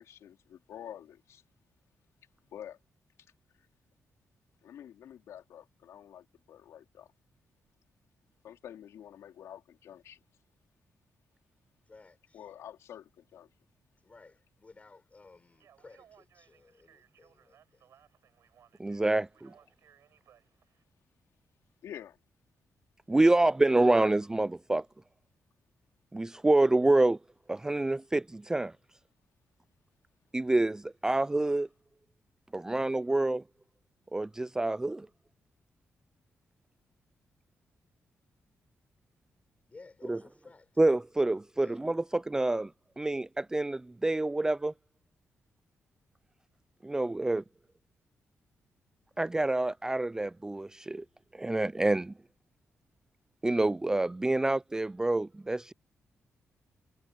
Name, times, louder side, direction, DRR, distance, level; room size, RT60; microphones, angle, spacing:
voice 1, 0.0-1.4 2.5-2.8 4.6-7.1 8.4-10.2 12.3-13.5 21.8-22.2, left 10 dB, 90° left, 3.8 m, -48 dB
voice 2, 11.9-12.5 14.0-17.9 39.7-40.8 41.5-41.8, left 3 dB, 30° left, 6.5 m, -55 dB
Speech, 15.5-20.8, right 9 dB, 80° right, 6.0 m, -63 dB
voice 3, 18.8-19.5 23.1-24.8 26.1-27.2 27.5-28.7 30.3-31.7 32.5-33.4 34.1-35.1 40.1-40.2 40.8-42.7 43.0-44.7 46.8-47.4 49.2-51.0 51.4-52.1 53.4-55.7, right 2 dB, 15° right, 0.3 m, -27 dB
cardioid pair, 100°, 5 cm